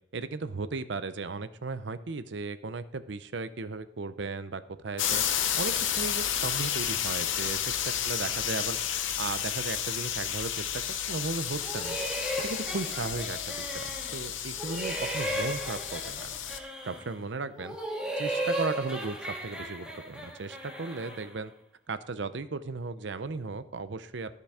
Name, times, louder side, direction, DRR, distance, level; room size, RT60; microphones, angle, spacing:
voice 1, 0.1-5.2 5.6-10.8 11.1-12.0 12.4-16.4 16.8-17.8 18.2-21.5 21.9-24.4, right 3 dB, 70° right, 13 dB, 0.6 m, -36 dB
sound 1, 5.0-16.6, left 9 dB, 90° left, 0.8 m, -32 dB
sound 2, 11.6-14.3 14.6-17.1 17.6-21.3, right 1 dB, 5° right, 1.8 m, -35 dB
13.0 x 6.8 x 4.9 m, 0.79 s
head